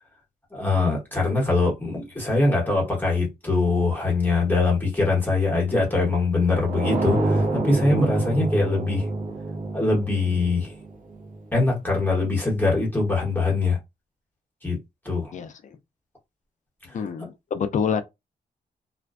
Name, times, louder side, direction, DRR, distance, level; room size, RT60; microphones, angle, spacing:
voice 1, 0.5-9.1 9.7-10.7 11.5-13.8 14.6-14.8 15.0-15.3 16.9-17.0, left 3 dB, 10° left, 1.0 m, -23 dB
sound 1, 6.6-11.4, right 2 dB, 55° right, 0.7 m, -27 dB
voice 2, 16.9-18.0, left 6 dB, 50° left, 0.4 m, -26 dB
2.4 x 2.1 x 2.3 m
wide cardioid pair, 135°, 17 cm